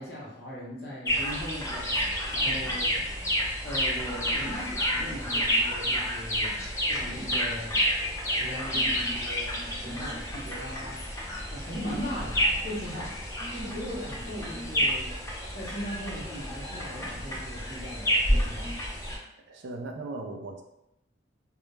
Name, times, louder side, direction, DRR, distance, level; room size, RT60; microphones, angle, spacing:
voice 1, 0.0-2.0 2.3-2.9 3.6-6.5 6.9-7.7 8.3-9.5 9.8-11.0 11.5-13.1 13.5-15.1 15.5-18.7, equal, 55° left, -6 dB, 0.9 m, -38 dB
sound 1, 1.1-19.2, equal, 15° left, 0.4 m, -30 dB
voice 2, 19.5-20.6, right 2 dB, 70° right, 3 dB, 0.4 m, -38 dB
2.3 x 2.0 x 3.1 m, 0.84 s
head